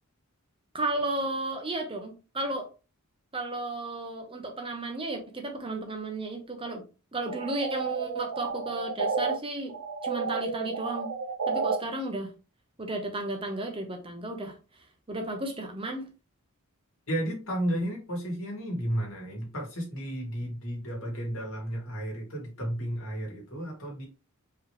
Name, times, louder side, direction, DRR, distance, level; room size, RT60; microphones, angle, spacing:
voice 1, 0.7-2.7 3.3-6.8 7.1-9.7 10.0-11.1 11.5-12.3 12.8-14.5 15.1-16.1, right 2 dB, 25° right, 3 dB, 0.8 m, -33 dB
sound 1, 7.3-9.3 9.7-11.8, right 4 dB, 80° right, 0.6 m, -31 dB
voice 2, 17.1-24.1, equal, 65° left, 0 dB, 2.2 m, -33 dB
4.7 x 3.1 x 3.3 m, 0.31 s
head